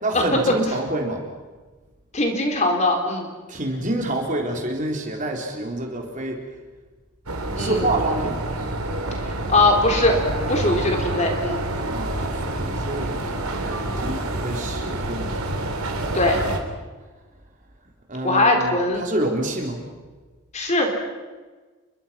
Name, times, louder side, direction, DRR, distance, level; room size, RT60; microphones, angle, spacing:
voice 1, 0.0-1.2 3.5-6.4 7.6-8.4 11.9-15.5 18.1-19.8, right 1 dB, 35° right, 2 dB, 3.9 m, -27 dB
voice 2, 2.1-3.3 7.6-7.9 9.5-10.2 10.5-11.6 16.1-16.4 18.2-19.0 20.5-20.9, left 2 dB, 30° left, 3 dB, 4.0 m, -20 dB
sound 1, 7.3-16.6, right 2 dB, 80° right, 3.6 m, -27 dB
29.5 x 23.5 x 5.9 m, 1.3 s
head